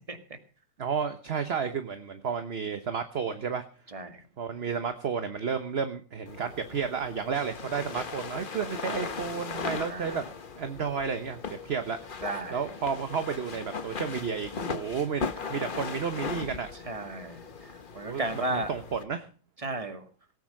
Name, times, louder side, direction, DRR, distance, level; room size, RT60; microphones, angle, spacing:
voice 1, 0.8-3.6 4.4-10.2 10.6-11.4 11.6-12.1 12.5-16.7 18.0-19.3, right 6 dB, 45° right, 8 dB, 1.2 m, -32 dB
voice 2, 3.9-4.2 9.9-10.2 12.2-12.6 16.9-18.7 19.6-20.0, right 2 dB, 20° right, 7 dB, 1.9 m, -34 dB
sound 1, 6.3-19.0, left 5 dB, 35° left, 1.1 m, -38 dB
18.0 x 9.2 x 6.5 m, 0.39 s
omnidirectional pair, 1.7 m